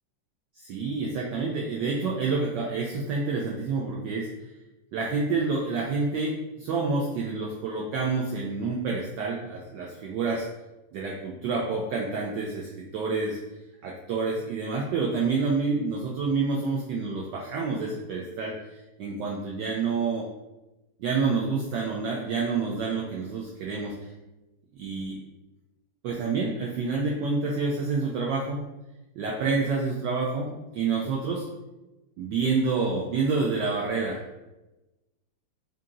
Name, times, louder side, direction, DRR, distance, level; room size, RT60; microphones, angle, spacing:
voice 1, 0.6-4.3 4.9-10.5 10.9-13.4 13.8-20.3 21.0-23.9 24.7-25.2 26.0-28.6 29.2-31.5 32.2-34.2, right 4 dB, 75° right, -2 dB, 1.1 m, -28 dB
3.9 x 2.7 x 3.7 m, 1.0 s
omnidirectional pair, 2.3 m